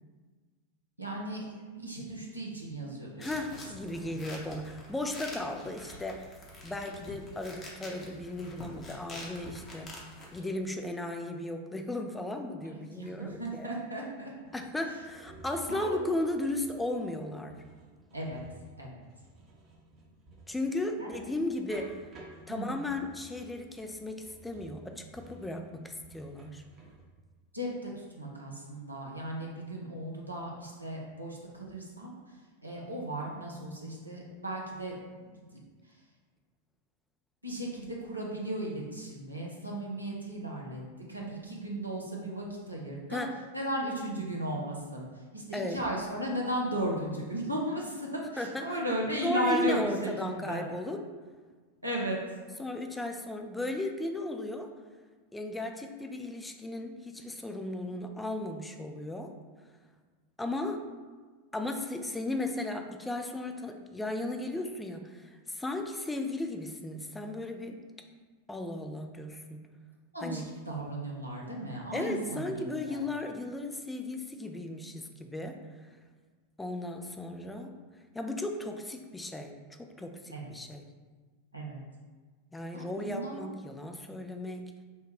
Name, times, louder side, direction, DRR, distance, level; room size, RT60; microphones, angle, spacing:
voice 1, 1.0-3.5 4.0-4.1 12.9-14.3 15.7-16.1 18.1-18.4 18.8-19.0 21.0-21.1 22.5-22.8 27.5-32.4 32.6-34.9 35.2-35.6 37.4-43.3 43.5-50.7 51.8-52.2 70.1-73.0 80.3-80.5 81.5-81.8 82.7-83.4, right 1 dB, 85° right, -2 dB, 0.7 m, -36 dB
sound 1, 3.2-10.4, left 1 dB, 25° left, 0.9 m, -46 dB
voice 2, 3.2-6.4 6.6-10.0 10.3-13.7 14.5-17.6 20.5-22.0 22.5-26.6 43.1-43.4 45.5-45.8 48.4-48.8 49.2-51.0 52.6-54.7 55.3-59.3 60.4-60.9 61.5-67.8 68.5-69.6 70.2-70.5 71.9-75.9 76.6-77.7 78.1-80.9 82.5-84.7, left 2 dB, 10° left, 4 dB, 0.4 m, -35 dB
sound 2, 14.4-27.1, right 2 dB, 30° right, 0.8 m, -54 dB
5.4 x 2.2 x 3.2 m, 1.4 s
figure-of-eight pair, 90°, 0 cm